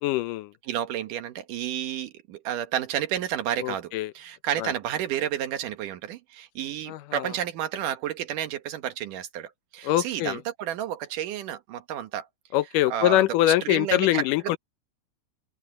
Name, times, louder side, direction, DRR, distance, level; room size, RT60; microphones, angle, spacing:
voice 1, 0.0-0.5 3.6-4.1 4.6-4.7 6.9-7.3 9.8-10.4 12.5-14.6, left 14 dB, 85° left, 2.5 m, -24 dB
voice 2, 0.7-12.3 12.9-13.2 13.6-14.2, right 10 dB, 80° right, 2.9 m, -31 dB
omnidirectional pair, 3.7 m